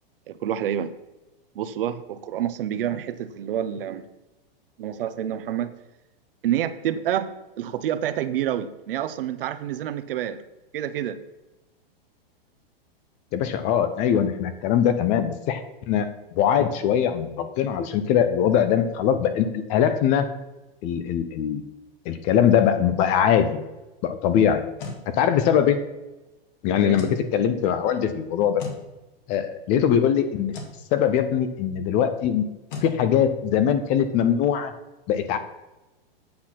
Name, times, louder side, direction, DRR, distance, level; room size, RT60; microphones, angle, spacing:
voice 1, 0.3-0.9 1.5-4.0 4.8-5.7 6.4-10.4 10.7-11.2 26.8-27.0, right 10 dB, 65° right, 12 dB, 0.8 m, -28 dB
voice 2, 13.3-16.1 16.3-20.3 20.8-21.6 22.1-23.6 24.0-24.6 25.2-25.8 26.6-28.6 29.3-30.5 30.9-32.5 32.8-34.7 35.1-35.4, left 9 dB, 25° left, 10 dB, 0.5 m, -22 dB
sound 1, 24.8-25.0 26.9-27.2 28.6-28.8 30.5-30.8 32.7-32.9, left 4 dB, 60° left, 2.1 m, -35 dB
8.7 x 6.0 x 5.8 m, 1.0 s
supercardioid pair, 155°, 30 cm